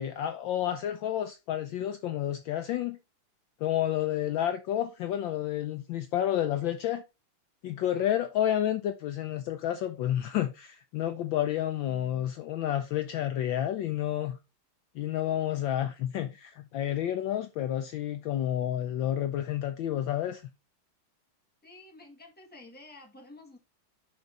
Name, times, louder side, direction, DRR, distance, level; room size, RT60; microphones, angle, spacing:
voice 1, 0.0-3.0 3.6-7.0 7.6-14.4 15.0-20.4, left 11 dB, 70° left, 1.2 m, -30 dB
voice 2, 21.6-23.6, left 2 dB, 5° left, 1.4 m, -50 dB
10.5 x 3.9 x 3.5 m
omnidirectional pair, 2.4 m